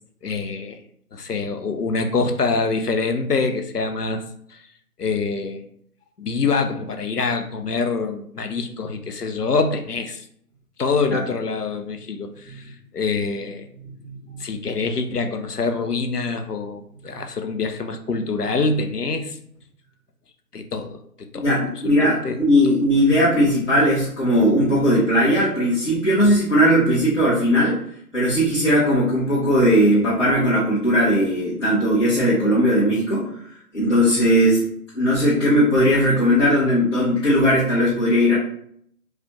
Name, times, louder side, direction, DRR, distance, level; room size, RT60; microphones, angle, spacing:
voice 1, 0.2-0.8 1.1-4.2 4.5-4.6 5.0-5.6 6.2-10.3 10.8-13.7 14.4-19.4 20.5-21.0 21.3-21.5 21.8-22.4, left 4 dB, 75° left, 6 dB, 0.8 m, -25 dB
voice 2, 14.0-14.4 21.3-27.8 28.1-33.3 33.7-34.7 34.9-38.4, equal, 50° left, -10 dB, 1.5 m, -18 dB
4.8 x 2.4 x 3.1 m, 0.66 s
figure-of-eight pair, 160°, 47 cm